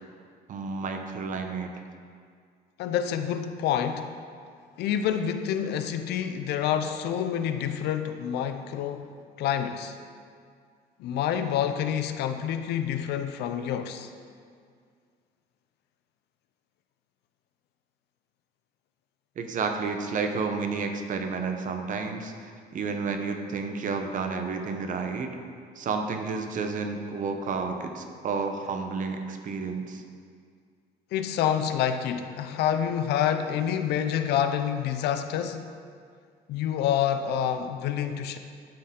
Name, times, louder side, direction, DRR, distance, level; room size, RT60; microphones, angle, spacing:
voice 1, 0.5-1.7 19.4-22.3 22.7-25.3 25.8-30.0, right 4 dB, 50° right, 5 dB, 0.8 m, -31 dB
voice 2, 2.8-4.1 4.8-9.1 9.4-10.0 11.0-14.1 31.1-35.7 36.5-38.4, left 9 dB, 75° left, 8 dB, 0.5 m, -27 dB
11.5 x 4.4 x 3.7 m, 2.1 s
cardioid pair, 110°, 17 cm